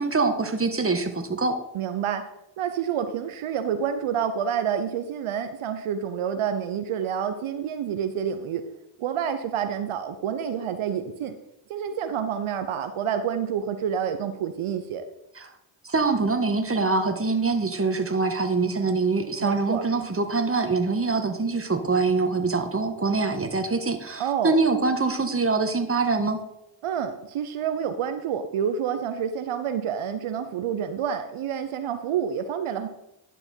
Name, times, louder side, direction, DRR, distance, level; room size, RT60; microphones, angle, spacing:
voice 1, 0.0-1.6 15.4-15.5 15.8-26.4, right 3 dB, 25° right, 7 dB, 1.5 m, -24 dB
voice 2, 1.7-2.2 2.6-8.6 9.0-11.3 11.7-15.0 19.4-20.1 24.2-24.6 26.8-32.9, right 8 dB, 80° right, 9 dB, 0.8 m, -28 dB
11.0 x 6.1 x 4.5 m, 0.84 s
supercardioid pair, 45°, 50 cm